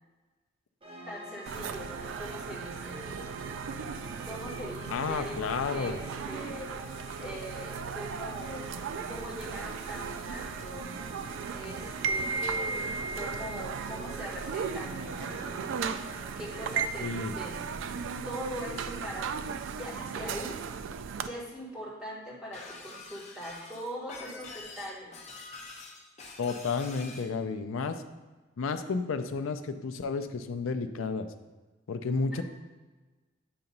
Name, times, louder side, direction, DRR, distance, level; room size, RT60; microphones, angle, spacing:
sound 1, 0.8-16.8, right 1 dB, 25° right, 0.8 m, -46 dB
voice 1, 1.0-3.1 4.2-6.7 7.2-8.7 9.1-10.9 11.5-15.7 16.4-17.6 18.2-20.6 21.2-25.1 32.3-32.4, equal, 5° right, -7 dB, 1.6 m, -42 dB
sound 2, 1.5-21.3, right 5 dB, 65° right, 0.3 m, -36 dB
voice 2, 4.9-6.0 17.0-17.3 26.4-28.0 28.6-31.3 31.9-32.4, left 4 dB, 75° left, 9 dB, 0.4 m, -31 dB
Shatter, 22.5-27.3, left 3 dB, 35° left, 0.9 m, -46 dB
7.8 x 2.9 x 5.2 m, 1.3 s
head